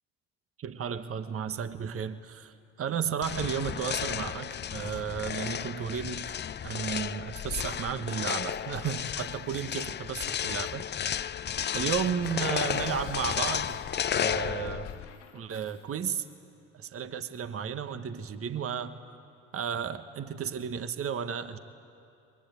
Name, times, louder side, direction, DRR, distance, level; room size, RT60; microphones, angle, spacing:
voice 1, 0.6-6.3 6.6-10.9 11.7-13.8 14.2-14.9 15.3-16.2 16.7-19.0 19.5-21.6, right 7 dB, 40° right, 10 dB, 1.3 m, -33 dB
sound 1, 3.2-15.1, left 9 dB, 30° left, 0.6 m, -33 dB
Bell / Coin (dropping), 8.5-10.0 10.4-16.4, left 8 dB, 85° left, 2.7 m, -54 dB
23.0 x 21.5 x 9.6 m, 2.6 s
hypercardioid pair, 65°, 35 cm